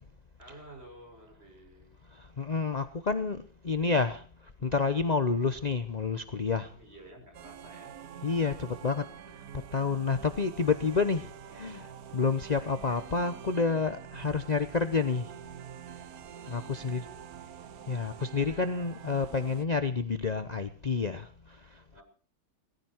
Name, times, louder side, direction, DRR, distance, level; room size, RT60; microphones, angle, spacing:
voice 1, 0.4-1.9 4.6-4.8 6.7-8.0 16.3-17.3 21.9-22.0, right 1 dB, 30° right, 6.3 m, -52 dB
voice 2, 2.1-4.2 4.6-6.7 8.2-9.0 9.7-15.3 16.5-17.1 17.9-22.0, left 4 dB, 50° left, 0.5 m, -29 dB
sound 1, 7.3-19.6, right 9 dB, 55° right, 1.2 m, -46 dB
18.5 x 15.0 x 4.5 m
omnidirectional pair, 2.1 m